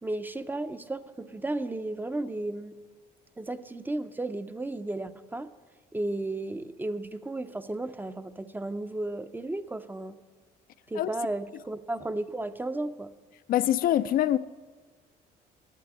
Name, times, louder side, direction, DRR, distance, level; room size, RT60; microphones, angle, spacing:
voice 1, 0.0-2.8 3.4-5.5 5.9-10.2 10.9-13.1, right 2 dB, 10° right, 0.5 m, -34 dB
voice 2, 13.5-14.4, left 12 dB, 60° left, 0.4 m, -24 dB
11.5 x 8.0 x 9.6 m
cardioid pair, 110°, 17 cm